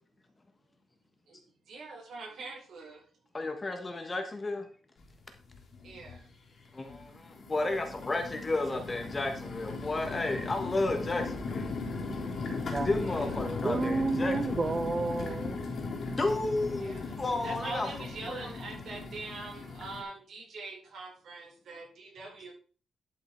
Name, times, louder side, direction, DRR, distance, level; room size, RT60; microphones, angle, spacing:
voice 1, 1.7-3.0 5.8-6.3 13.0-13.5 16.8-17.2 17.4-22.5, right 3 dB, 60° right, -1 dB, 4.5 m, -43 dB
voice 2, 3.3-4.7 6.7-11.7 12.8-14.6 16.2-17.9 18.3-18.5, left 2 dB, 20° left, 5 dB, 1.3 m, -32 dB
sound 1, 5.0-5.1 5.5-6.2 6.8-20.0, left 3 dB, 45° left, 2.6 m, -37 dB
voice 3, 12.1-13.1 13.6-15.6, right 3 dB, 25° right, 9 dB, 0.6 m, -32 dB
11.5 x 5.7 x 4.5 m, 0.39 s
wide cardioid pair, 165°, 0 cm